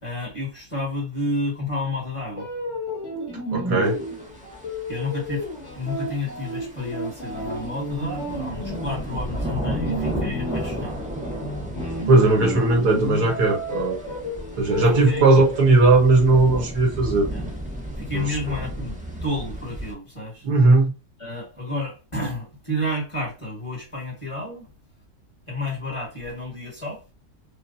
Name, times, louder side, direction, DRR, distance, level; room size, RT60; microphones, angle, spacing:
voice 1, 0.0-2.5 4.9-5.5 5.8-11.0 15.0-15.3 17.3-17.5 18.0-20.5 21.2-24.7 25.5-27.0, left 1 dB, 20° left, 1.7 m, -30 dB
sound 1, 2.3-15.7, equal, 45° left, 2.1 m, -32 dB
voice 2, 3.5-4.0 12.1-14.0 14.6-17.3 18.1-18.6 20.4-20.9, right 3 dB, 70° right, 1.8 m, -18 dB
sound 2, 3.8-19.9, right 1 dB, 5° right, 0.7 m, -34 dB
5.6 x 2.5 x 2.7 m
omnidirectional pair, 1.8 m